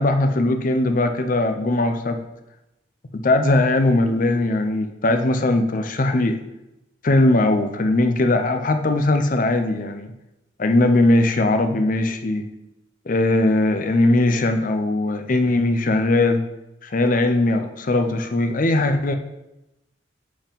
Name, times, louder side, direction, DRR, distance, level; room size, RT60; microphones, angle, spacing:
voice 1, 0.0-2.2 3.1-6.4 7.0-10.1 10.6-12.4 13.1-16.4 16.8-19.2, left 2 dB, 45° left, 8 dB, 0.6 m, -19 dB
5.3 x 4.9 x 5.2 m, 0.93 s
head